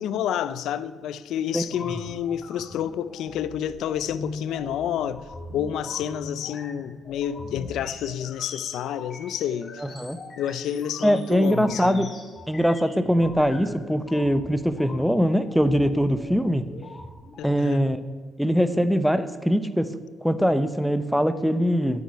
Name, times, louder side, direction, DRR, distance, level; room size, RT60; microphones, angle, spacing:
voice 1, 0.0-5.3 5.5-9.8 10.4-12.1 17.4-17.8, left 10 dB, 80° left, 0.5 m, -29 dB
voice 2, 1.5-2.0 9.9-10.2 11.0-12.1 12.5-16.7 17.4-18.0 18.4-19.9 20.2-22.0, equal, ahead, 0.9 m, -22 dB
sound 1, 1.6-17.5, left 2 dB, 40° left, 3.3 m, -41 dB
9.7 x 8.0 x 9.4 m
cardioid pair, 90°, 0 cm